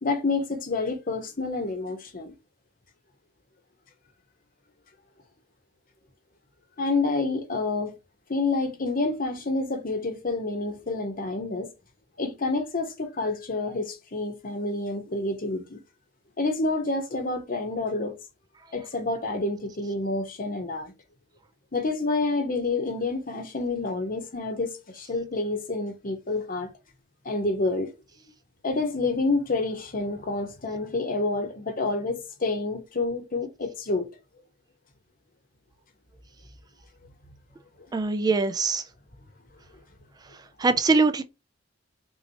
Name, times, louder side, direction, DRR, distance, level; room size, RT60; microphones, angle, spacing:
voice 1, 0.0-2.3 6.8-7.9 8.3-11.7 12.2-15.8 16.4-18.2 18.7-20.9 21.7-26.7 27.2-27.9 28.6-34.1, left 3 dB, 50° left, 1.0 m, -28 dB
voice 2, 37.9-38.8 40.6-41.2, right 3 dB, 20° right, 0.3 m, -22 dB
4.1 x 2.7 x 2.8 m
head